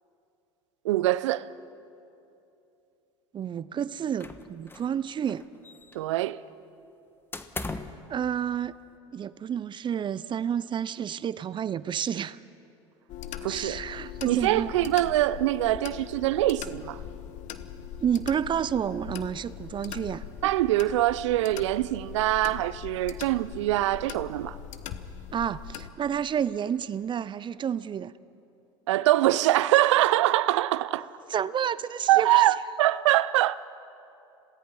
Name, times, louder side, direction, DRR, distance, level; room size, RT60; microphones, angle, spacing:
voice 1, 0.8-1.5 5.9-6.4 13.4-13.8 14.2-17.0 20.4-24.6 28.9-31.1 32.1-33.6, right 15 dB, 80° right, 0.6 m, -24 dB
voice 2, 3.3-5.5 8.1-8.7 9.1-12.4 13.5-14.7 18.0-20.2 25.3-28.1 31.3-32.4, right 8 dB, 30° right, 0.6 m, -30 dB
sound 1, 4.2-5.0 5.2-6.2 7.3-8.1, left 3 dB, 15° left, 1.2 m, -38 dB
sound 2, 13.1-25.9, left 9 dB, 55° left, 1.2 m, -41 dB
27.0 x 18.0 x 5.7 m
hypercardioid pair, 85°, 15 cm